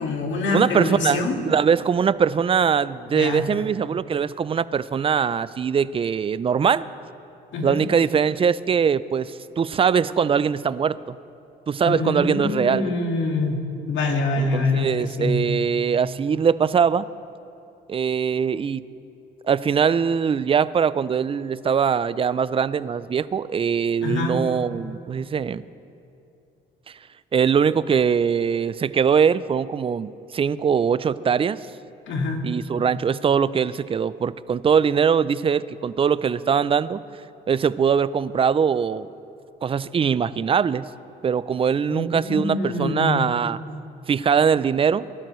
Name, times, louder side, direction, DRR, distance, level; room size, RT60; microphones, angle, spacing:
voice 1, 0.0-1.4 3.1-3.4 7.5-7.8 11.8-15.4 24.0-24.4 32.1-32.4 41.9-43.3, left 3 dB, 70° left, 2 dB, 1.9 m, -25 dB
voice 2, 0.5-6.8 7.6-11.2 11.7-12.9 14.4-17.1 17.9-18.8 19.5-25.6 27.3-31.6 32.4-37.0 37.5-39.1 39.6-40.9 41.2-43.6 44.1-45.1, right 7 dB, 30° right, 17 dB, 0.3 m, -22 dB
20.5 x 12.5 x 3.1 m, 2.7 s
cardioid pair, 90°, 20 cm